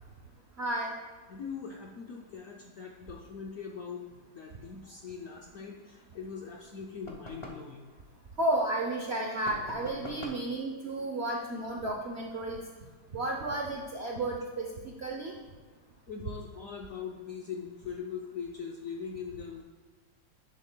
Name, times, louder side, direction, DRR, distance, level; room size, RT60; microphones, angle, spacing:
voice 1, 0.6-0.9 8.4-12.6 13.1-14.7 15.0-15.3, right 1 dB, 60° right, 0 dB, 0.6 m, -32 dB
voice 2, 1.3-7.9 13.1-13.2 16.1-19.6, left 6 dB, 65° left, 0 dB, 0.8 m, -41 dB
sound 1, 7.0-7.7 9.4-10.5, left 1 dB, 35° left, 0.5 m, -44 dB
10.5 x 7.2 x 2.2 m, 1.4 s
omnidirectional pair, 2.0 m